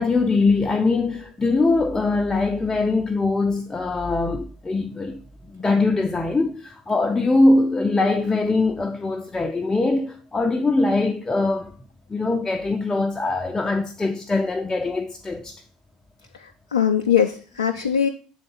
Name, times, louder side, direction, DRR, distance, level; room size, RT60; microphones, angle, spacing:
voice 1, 0.0-5.2 5.5-11.7 12.1-15.6, left 3 dB, 15° left, 0.5 m, -22 dB
voice 2, 16.4-18.1, left 8 dB, 85° left, 0.3 m, -21 dB
7.7 x 3.8 x 3.7 m
figure-of-eight pair, 65°, 3 cm